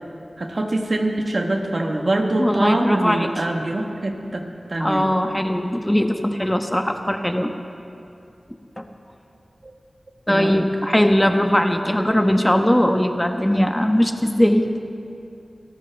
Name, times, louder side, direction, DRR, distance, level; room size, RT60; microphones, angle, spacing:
voice 1, 0.4-4.4 4.7-5.1 10.3-10.6, right 1 dB, 55° right, 3 dB, 1.3 m, -24 dB
voice 2, 2.4-3.3 4.8-7.5 8.8-8.9 10.3-14.7, equal, 10° left, 5 dB, 1.2 m, -19 dB
28.0 x 13.5 x 3.5 m, 2.6 s
wide cardioid pair, 65°, 0 cm